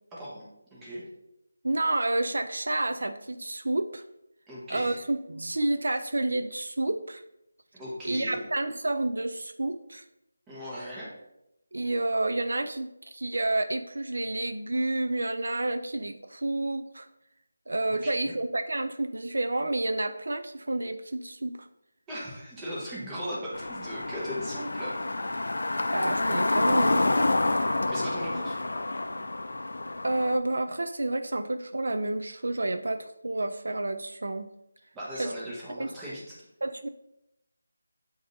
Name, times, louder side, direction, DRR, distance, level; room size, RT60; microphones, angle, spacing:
voice 1, 0.1-0.4 0.7-1.0 4.5-4.9 7.8-8.4 10.5-11.1 17.9-18.3 22.1-25.0 27.4-28.6 34.9-36.3, equal, 10° right, -7 dB, 1.1 m, -38 dB
voice 2, 1.6-4.0 4.7-7.2 8.0-10.0 11.7-17.1 17.7-21.7 25.9-27.1 30.0-34.5 35.2-35.3 35.8-35.9 36.6-36.9, right 2 dB, 75° right, 8 dB, 0.3 m, -29 dB
sound 1, 23.5-30.4, left 2 dB, 70° left, 0.3 m, -28 dB
7.7 x 2.7 x 2.6 m, 0.85 s
figure-of-eight pair, 170°, 0 cm